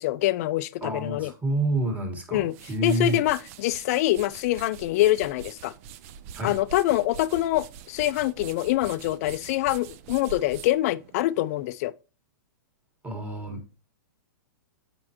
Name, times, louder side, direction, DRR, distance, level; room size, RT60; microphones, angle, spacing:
voice 1, 0.0-1.3 2.3-2.5 2.8-5.7 6.4-11.9, left 15 dB, 50° left, 0.4 m, -25 dB
voice 2, 0.8-3.2 6.3-6.6 13.0-13.8, right 2 dB, 15° right, 1.7 m, -28 dB
sound 1, 2.3-11.7, right 8 dB, 45° right, 0.5 m, -45 dB
7.5 x 5.3 x 3.0 m
hypercardioid pair, 130°, 11 cm